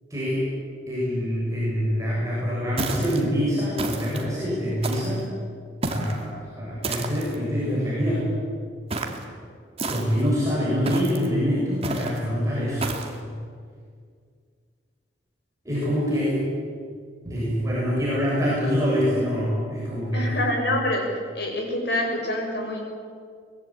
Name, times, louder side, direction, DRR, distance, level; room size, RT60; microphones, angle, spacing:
voice 1, 0.1-0.4 0.9-5.3 5.9-8.3 9.9-12.9 15.6-16.4 17.2-20.4, equal, 20° right, -7 dB, 7.2 m, -25 dB
sound 1, 2.8-3.2 3.8-4.3 4.8-5.2 5.8-6.2 6.8-7.4 8.9-9.2 9.8-10.3 10.9-11.3 11.8-12.2 12.8-13.2, right 2 dB, 35° right, 2.6 m, -30 dB
voice 2, 20.1-21.1 21.3-22.8, left 1 dB, 65° left, 1 dB, 6.6 m, -26 dB
23.5 x 20.5 x 8.9 m, 2.1 s
head